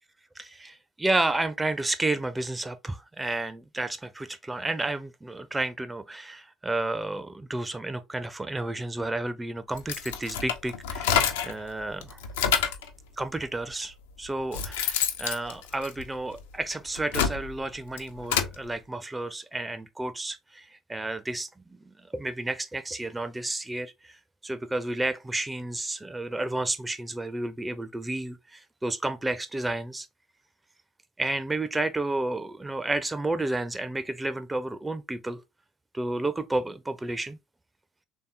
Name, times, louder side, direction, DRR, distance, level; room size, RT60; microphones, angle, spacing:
voice 1, 0.4-12.2 13.2-21.8 22.1-24.2 24.4-30.1 31.2-35.4 35.9-37.4, right 2 dB, 15° right, 0.4 m, -31 dB
sound 1, 9.8-11.6 12.0-12.9 13.7-13.8 14.3-16.4 16.9-18.6, left 8 dB, 70° left, 0.4 m, -28 dB
3.3 x 2.7 x 2.7 m
figure-of-eight pair, 55°, 0 cm